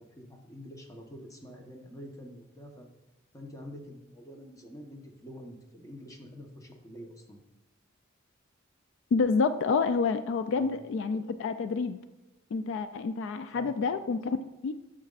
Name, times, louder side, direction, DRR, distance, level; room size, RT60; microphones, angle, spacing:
voice 1, 0.0-2.9 3.3-7.4 10.5-10.7 13.5-13.7, equal, 15° left, 2 dB, 1.0 m, -47 dB
voice 2, 9.1-12.0 12.5-14.4 14.6-14.7, left 4 dB, 65° left, 11 dB, 0.3 m, -28 dB
9.2 x 6.5 x 2.4 m, 1.1 s
head